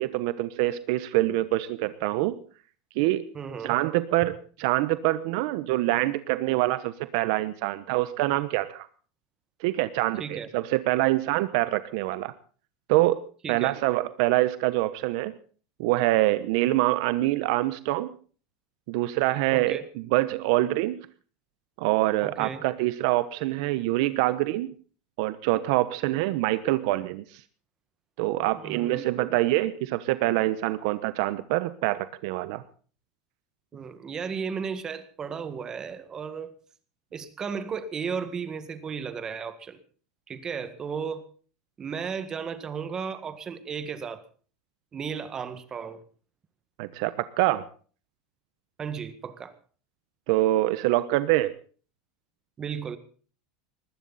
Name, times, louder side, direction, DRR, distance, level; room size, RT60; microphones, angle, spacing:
voice 1, 0.0-2.4 3.0-3.3 3.6-8.9 9.6-12.3 12.9-13.2 13.5-15.3 15.8-18.1 18.9-21.1 21.8-24.7 25.2-27.4 28.2-32.6 46.8-47.6 50.3-51.5, right 17 dB, 65° right, 14 dB, 1.0 m, -25 dB
voice 2, 3.3-3.7 10.2-10.5 13.4-13.7 19.5-19.9 22.2-22.7 28.6-29.0 33.7-36.5 37.1-39.8 40.3-41.2 41.8-44.2 44.9-46.0 48.8-49.6 52.6-53.0, right 6 dB, 25° right, 11 dB, 1.7 m, -34 dB
20.5 x 15.5 x 4.1 m, 0.41 s
supercardioid pair, 145°, 3 cm